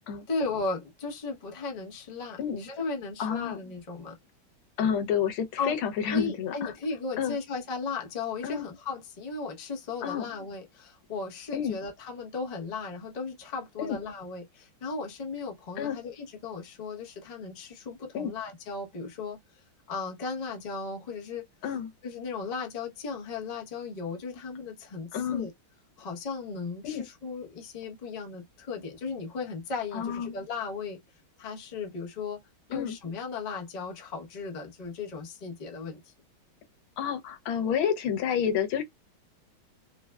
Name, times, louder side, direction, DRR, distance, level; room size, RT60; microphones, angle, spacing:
voice 1, 0.3-4.2 5.6-5.8 6.1-21.5 22.0-25.5 26.0-31.0 31.4-32.4 32.7-36.1, left 4 dB, 50° left, 0.4 m, -36 dB
voice 2, 3.2-3.6 4.8-6.7 7.2-7.4 8.4-8.7 10.0-10.2 11.5-11.8 13.8-14.0 15.8-16.0 18.1-18.3 21.6-21.9 25.1-25.5 26.8-27.1 29.9-30.3 32.7-33.0 37.0-38.8, left 8 dB, 90° left, 1.6 m, -29 dB
3.9 x 2.0 x 2.2 m
omnidirectional pair, 2.2 m